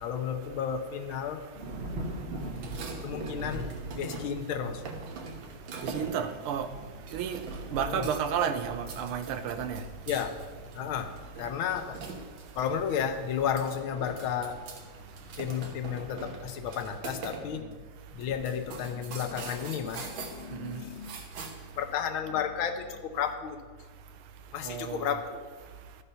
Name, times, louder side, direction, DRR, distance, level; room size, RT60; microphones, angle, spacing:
voice 1, 0.0-1.4 3.0-3.7 4.0-4.8 7.9-8.1 10.1-10.4 10.7-12.0 12.5-14.6 15.4-17.8 18.1-21.2 21.8-23.6 24.5-25.5, left 8 dB, 75° left, 8 dB, 1.5 m, -33 dB
Thunder / Rain, 1.5-17.1, right 1 dB, 35° right, 1.2 m, -44 dB
sound 1, 2.5-4.5 4.9-6.3 7.1-7.7 8.0-8.4 8.8-12.7 13.0-13.1 13.4-14.8 15.1-17.5 17.7-17.8 18.2-21.8, right 4 dB, 65° right, 1.7 m, -43 dB
voice 2, 5.8-6.7 7.1-7.4 7.7-9.8 20.6-20.8 24.6-25.1, right 8 dB, 90° right, 10 dB, 1.6 m, -31 dB
12.5 x 5.4 x 5.6 m, 1.5 s
omnidirectional pair, 2.4 m